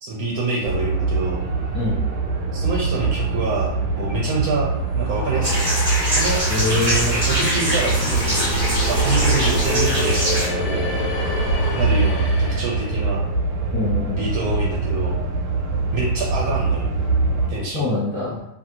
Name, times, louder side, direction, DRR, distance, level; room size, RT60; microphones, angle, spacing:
voice 1, 0.0-1.4 2.5-4.7 4.9-5.7 6.1-6.4 7.0-11.0 11.7-13.2 14.2-15.2 15.9-16.9 17.5-17.9, right 3 dB, 70° right, -3 dB, 1.0 m, -26 dB
sound 1, 0.6-17.5, right 3 dB, 90° right, 1.2 m, -23 dB
sound 2, 4.7-13.0, left 3 dB, 70° left, 0.8 m, -29 dB
sound 3, 5.4-10.5, equal, 30° right, 0.6 m, -24 dB
voice 2, 6.5-7.2 13.7-14.2 17.7-18.4, left 2 dB, 15° left, -8 dB, 0.8 m, -24 dB
2.6 x 2.6 x 2.7 m, 0.77 s
omnidirectional pair, 1.8 m